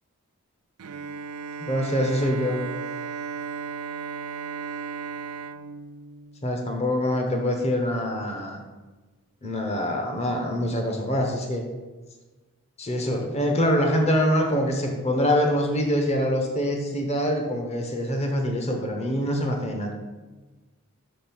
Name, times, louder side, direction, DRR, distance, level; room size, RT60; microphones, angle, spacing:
Bowed string instrument, 0.8-6.8, right 5 dB, 80° right, 0.5 m, -35 dB
voice 1, 1.6-2.6 6.4-8.6 9.4-11.6 12.8-19.9, equal, 30° left, 2 dB, 1.0 m, -25 dB
6.3 x 5.3 x 6.0 m, 1.2 s
head